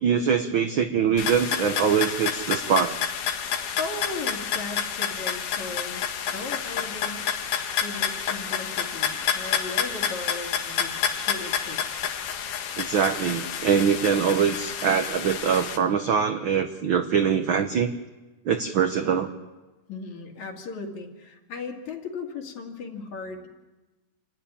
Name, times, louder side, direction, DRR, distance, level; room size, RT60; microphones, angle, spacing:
voice 1, 0.0-3.0 12.8-17.9 18.4-19.3, right 7 dB, 85° right, 8 dB, 1.1 m, -23 dB
sound 1, 1.2-15.8, left 8 dB, 90° left, 2.9 m, -29 dB
voice 2, 3.8-7.2 7.8-11.8 19.9-23.5, left 3 dB, 65° left, 2 dB, 3.6 m, -37 dB
28.0 x 14.5 x 10.0 m, 1.2 s
omnidirectional pair, 3.5 m